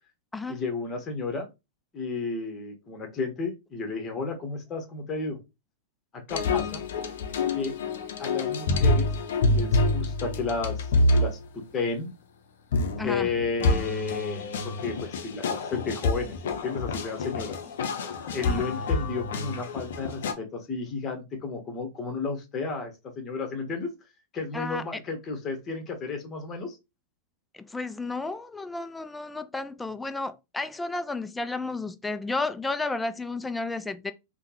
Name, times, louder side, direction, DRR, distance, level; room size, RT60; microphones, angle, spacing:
voice 1, 0.5-1.5 1.9-5.4 6.1-6.8 7.5-7.7 8.2-9.1 9.4-12.1 13.0-17.6 18.3-23.9 24.3-26.8, left 4 dB, 25° left, 1.2 m, -32 dB
sound 1, 6.3-11.3 12.7-20.3, left 2 dB, 65° left, 0.6 m, -27 dB
voice 2, 13.0-13.3 24.5-25.0 27.5-34.1, left 3 dB, 10° left, 0.4 m, -32 dB
3.5 x 2.2 x 3.0 m
figure-of-eight pair, 100°, 0 cm